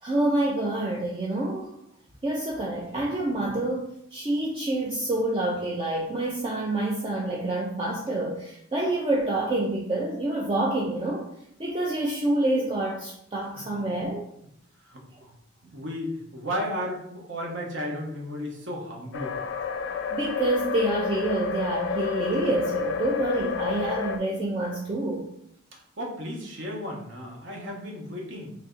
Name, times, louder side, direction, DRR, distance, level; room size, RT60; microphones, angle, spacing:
voice 1, 0.0-1.7 2.2-11.3 11.6-14.3 20.1-25.2, right 1 dB, 25° right, -3 dB, 0.4 m, -27 dB
voice 2, 14.8-15.3 15.7-19.4 25.7-28.5, equal, 60° right, -1 dB, 0.9 m, -34 dB
sound 1, 19.1-24.2, left 6 dB, 60° left, 0.3 m, -30 dB
3.2 x 2.6 x 3.7 m, 0.72 s
head